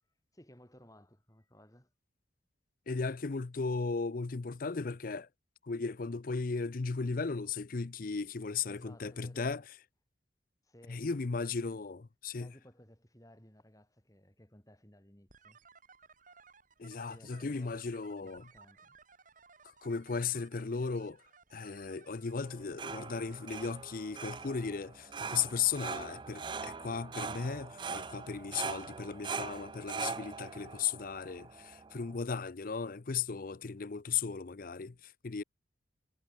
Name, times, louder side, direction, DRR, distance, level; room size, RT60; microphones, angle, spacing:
voice 1, 0.3-1.9 8.7-9.6 10.6-11.1 12.4-15.6 17.0-17.7 18.2-19.0, equal, 20° left, 4.7 m, -58 dB
voice 2, 2.9-5.3 5.6-9.6 10.9-12.5 16.8-18.5 19.8-21.2 21.5-35.4, left 5 dB, 45° left, 0.5 m, -36 dB
sound 1, 15.3-23.2, right 5 dB, 45° right, 4.6 m, -60 dB
sound 2, 22.4-32.2, right 5 dB, 25° right, 0.4 m, -42 dB
head